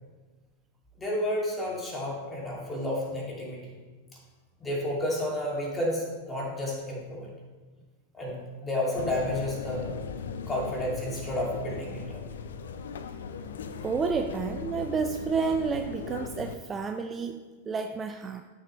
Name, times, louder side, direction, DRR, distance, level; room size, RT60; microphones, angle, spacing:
voice 1, 1.0-3.7 4.6-7.3 8.1-9.9 10.5-12.2, left 1 dB, 15° left, -3 dB, 2.6 m, -31 dB
sound 1, 9.0-16.6, left 5 dB, 65° left, 0.5 m, -38 dB
voice 2, 13.8-18.4, right 5 dB, 20° right, 6 dB, 0.4 m, -30 dB
13.5 x 6.4 x 3.3 m, 1.3 s
figure-of-eight pair, 90°, 0 cm